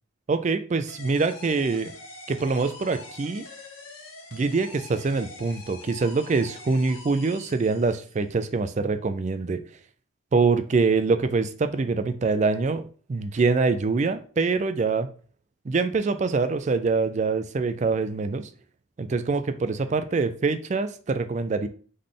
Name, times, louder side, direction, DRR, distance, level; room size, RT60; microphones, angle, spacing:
voice 1, 0.3-1.9 2.3-3.4 4.3-9.6 10.3-12.8 13.1-15.1 15.7-18.5 19.0-21.7, right 4 dB, 35° right, 10 dB, 0.3 m, -24 dB
sound 1, 0.9-8.2, left 2 dB, 85° left, 1.2 m, -44 dB
3.8 x 3.2 x 3.7 m, 0.42 s
head